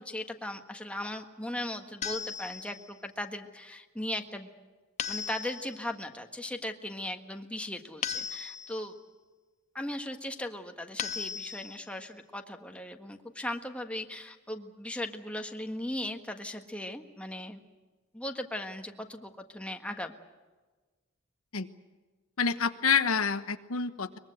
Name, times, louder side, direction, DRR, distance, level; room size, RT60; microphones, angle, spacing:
voice 1, 0.0-4.5 5.1-8.9 9.7-17.6 18.1-20.1, left 1 dB, 5° left, 4 dB, 1.5 m, -38 dB
sound 1, 2.0-2.9 5.0-5.9 8.0-8.9 11.0-11.9, left 6 dB, 35° left, 0.8 m, -37 dB
voice 2, 22.4-24.2, left 6 dB, 75° left, 9 dB, 1.2 m, -28 dB
23.0 x 22.0 x 7.9 m, 1.3 s
head